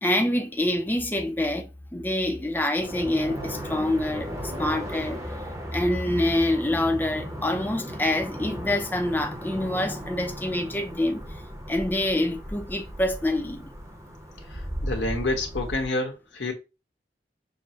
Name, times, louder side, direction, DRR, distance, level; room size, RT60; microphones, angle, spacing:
voice 1, 0.0-5.2 5.7-11.4 11.7-13.8, left 1 dB, 10° left, 0.5 m, -26 dB
sound 1, 2.8-15.9, equal, 15° right, 0.8 m, -36 dB
voice 2, 14.5-16.5, left 2 dB, 85° left, 1.2 m, -28 dB
6.3 x 2.1 x 2.8 m
head